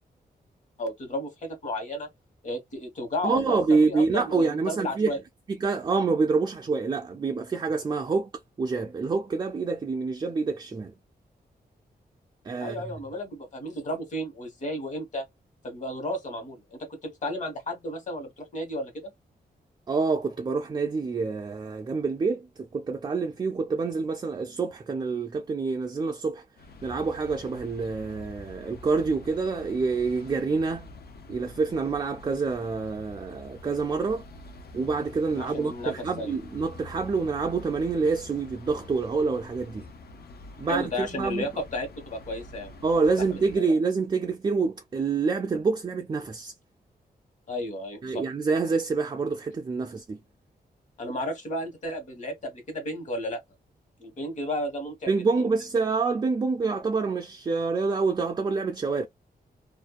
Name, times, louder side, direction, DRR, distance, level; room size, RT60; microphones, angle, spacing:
voice 1, 0.8-2.1 2.4-3.6 3.9-5.2 12.6-15.2 15.6-19.1 35.4-35.9 36.2-36.4 40.7-42.7 43.3-43.7 47.5-48.2 51.0-53.4 54.0-55.5, left 1 dB, 50° left, 1.2 m, -33 dB
voice 2, 3.2-5.1 5.6-8.3 8.6-10.9 12.5-13.0 19.9-22.5 22.7-26.4 26.8-30.9 31.3-34.2 34.7-39.8 40.6-41.5 42.8-46.5 48.0-50.2 55.1-59.1, right 4 dB, 30° right, 0.4 m, -27 dB
sound 1, 26.6-43.6, left 2 dB, 75° left, 0.6 m, -46 dB
2.5 x 2.1 x 2.3 m
wide cardioid pair, 135°, 17 cm